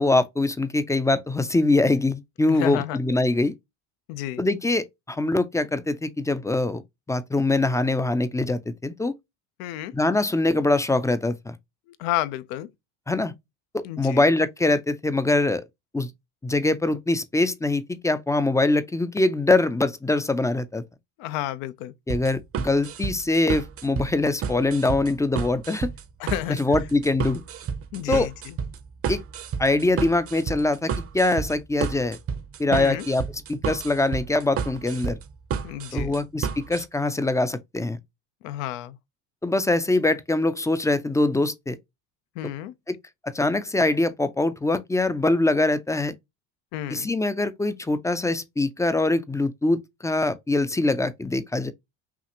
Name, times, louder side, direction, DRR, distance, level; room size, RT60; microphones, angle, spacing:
voice 1, 0.0-3.5 4.4-6.8 7.1-9.1 9.9-11.5 13.1-13.3 13.7-15.6 15.9-16.1 16.4-20.8 22.1-25.9 26.6-27.4 28.1-28.3 29.1-29.2 29.6-32.2 32.6-33.2 33.5-35.2 35.9-38.0 39.4-41.8 42.9-43.0 43.2-46.1 46.9-51.7, left 2 dB, 10° left, 0.3 m, -23 dB
voice 2, 2.5-3.0 4.1-4.4 9.6-9.9 11.9-12.7 13.8-14.2 21.2-21.9 26.2-26.9 27.9-28.6 32.7-33.1 35.6-36.2 38.4-39.0 42.4-42.7 46.7-47.1, left 13 dB, 90° left, 0.7 m, -31 dB
sound 1, 22.1-36.9, right 6 dB, 35° right, 0.6 m, -31 dB
5.8 x 2.4 x 2.9 m
cardioid pair, 105°, 41 cm